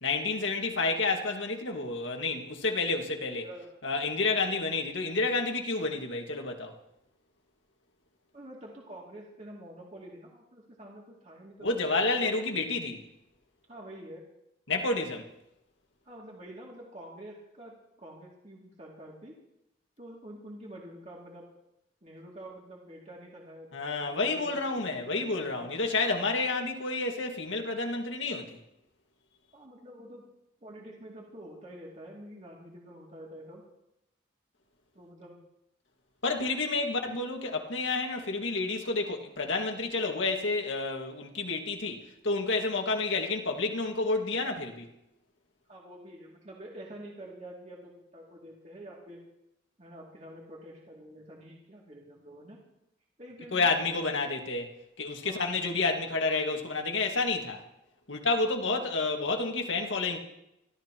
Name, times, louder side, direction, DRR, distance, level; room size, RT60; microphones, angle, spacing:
voice 1, 0.0-3.5 3.8-6.7 11.6-13.0 14.7-15.3 23.7-28.6 36.2-44.9 53.5-54.7 55.0-57.6 58.1-60.2, left 3 dB, 70° left, 1.9 m, -30 dB
voice 2, 3.3-3.7 4.3-4.7 8.3-12.3 13.7-14.2 14.8-15.0 16.0-19.4 20.0-21.4 22.0-23.7 24.0-25.7 29.5-30.3 30.6-33.6 34.9-35.4 45.7-49.2 49.8-52.6 53.2-53.7 55.2-55.4 58.7-59.1, right 1 dB, 35° right, 2.6 m, -47 dB
27.0 x 13.0 x 3.0 m
head